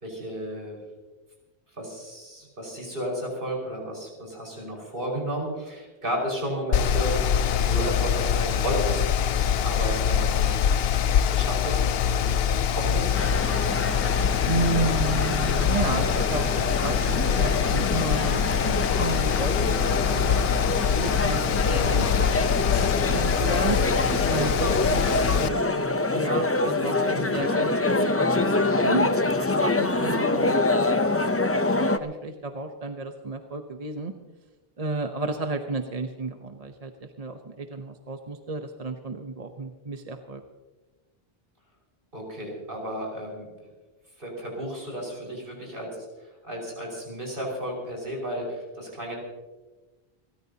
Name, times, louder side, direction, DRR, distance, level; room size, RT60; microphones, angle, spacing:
voice 1, 0.0-0.8 1.8-7.2 7.6-9.2 9.6-10.7 11.3-12.3 12.7-13.2 42.1-43.5 44.2-45.9 46.2-49.2, equal, 60° right, -1 dB, 5.5 m, -33 dB
Mechanical fan, 6.7-25.5, left 8 dB, 75° left, 0.8 m, -24 dB
sound 1, 13.1-32.0, left 2 dB, 20° left, 0.5 m, -25 dB
voice 2, 14.4-20.6 20.9-22.6 22.8-23.8 24.3-29.1 29.4-30.6 31.1-31.4 31.7-34.1 34.8-40.4, right 3 dB, 40° right, 5 dB, 0.9 m, -32 dB
29.5 x 13.5 x 2.8 m, 1.2 s
omnidirectional pair, 1.0 m